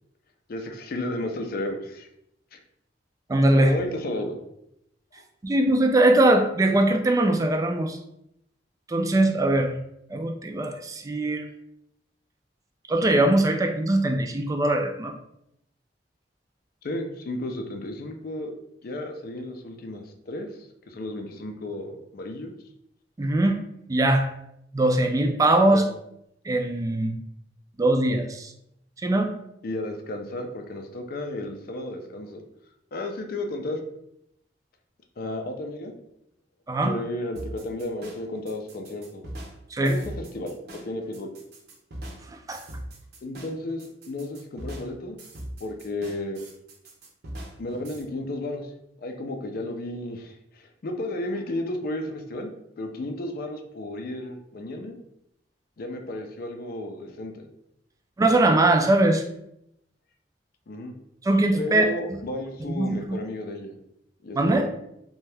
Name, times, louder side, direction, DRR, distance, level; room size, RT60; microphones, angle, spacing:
voice 1, 0.5-2.1 2.5-2.6 3.5-4.4 16.8-18.5 18.8-22.5 25.7-25.8 29.6-32.4 32.9-33.8 35.2-35.9 36.8-39.2 39.8-41.3 43.2-45.2 45.6-46.4 47.6-48.7 49.0-52.5 52.8-55.0 55.8-57.5 60.7-60.9 61.6-63.7 64.2-64.7, left 1 dB, 55° left, 4 dB, 0.4 m, -33 dB
voice 2, 3.3-3.7 5.4-8.0 8.9-9.8 10.1-11.4 12.9-15.1 23.2-23.6 23.9-24.3 24.7-25.8 26.4-27.1 27.8-28.5 29.0-29.3 36.7-37.0 39.7-40.0 42.3-42.6 58.2-59.2 61.2-61.9 62.7-63.2 64.3-64.7, right 1 dB, 20° right, 4 dB, 0.3 m, -21 dB
sound 1, 37.4-48.0, right 1 dB, 65° right, 0.7 m, -41 dB
2.7 x 2.2 x 3.2 m, 0.78 s
head